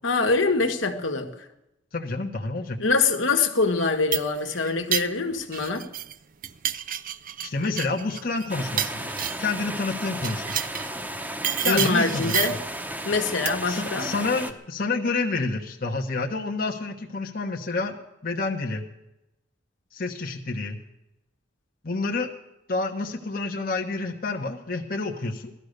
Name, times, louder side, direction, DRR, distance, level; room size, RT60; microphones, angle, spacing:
voice 1, 0.0-1.3 2.8-5.9 11.6-12.6 13.1-14.1, left 4 dB, 80° left, 1.7 m, -24 dB
voice 2, 1.9-2.8 7.4-9.1 9.4-10.6 11.6-12.4 13.7-17.9 18.2-18.8 19.9-20.8 21.8-22.3 22.7-25.5, left 3 dB, 50° left, 1.2 m, -28 dB
sound 1, 3.8-6.1 6.4-9.6 10.2-10.9 11.4-12.7 13.4-13.8, right 10 dB, 45° right, 0.5 m, -30 dB
sound 2, 8.5-14.5, right 1 dB, 10° right, 0.9 m, -34 dB
17.0 x 12.5 x 6.6 m
head